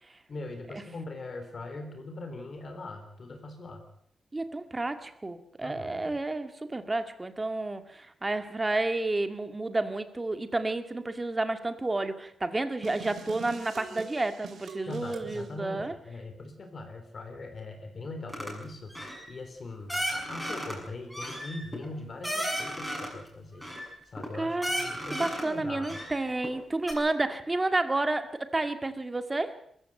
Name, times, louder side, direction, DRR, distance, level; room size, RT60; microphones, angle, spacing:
voice 1, 0.3-3.9 5.6-6.2 14.8-18.9 19.3-23.7 24.1-25.9, left 2 dB, 45° left, 6 dB, 3.7 m, -41 dB
voice 2, 4.3-15.9 24.4-29.5, right 2 dB, 20° right, 9 dB, 2.0 m, -31 dB
sound 1, 12.8-15.5, right 5 dB, 80° right, 2.8 m, -43 dB
sound 2, 18.3-18.5 18.9-19.3 19.9-20.8 21.1-23.2 23.6-24.3 24.6-25.5 25.8-26.5 26.9-27.0, equal, ahead, 6.6 m, -34 dB
22.0 x 15.0 x 9.0 m, 0.69 s
wide cardioid pair, 135°, 0 cm